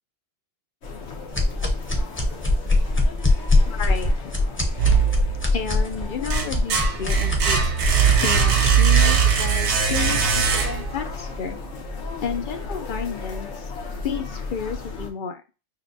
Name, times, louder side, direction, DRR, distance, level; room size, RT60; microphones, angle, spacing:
sound 1, 0.8-15.1, left 3 dB, 80° left, 1.2 m, -35 dB
sound 2, 1.3-9.1, left 2 dB, 10° left, 0.7 m, -22 dB
voice 1, 3.7-4.1 5.5-7.9 8.2-11.6 12.2-13.7 14.0-15.4, left 6 dB, 60° left, 7 dB, 0.6 m, -31 dB
sound 3, 4.8-5.6 6.0-11.1, right 7 dB, 75° right, 1.0 m, -20 dB
6.5 x 2.2 x 2.6 m, 0.32 s
omnidirectional pair, 1.2 m